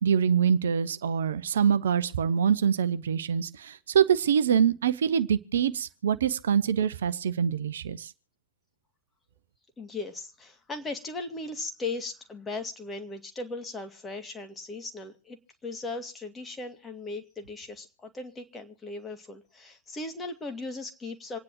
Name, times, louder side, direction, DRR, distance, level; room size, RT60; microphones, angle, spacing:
voice 1, 0.0-8.1, right 7 dB, 65° right, 0.7 m, -25 dB
voice 2, 9.8-15.4 15.6-21.4, left 3 dB, 15° left, 2.1 m, -37 dB
26.5 x 9.7 x 3.1 m
figure-of-eight pair, 90°, 0 cm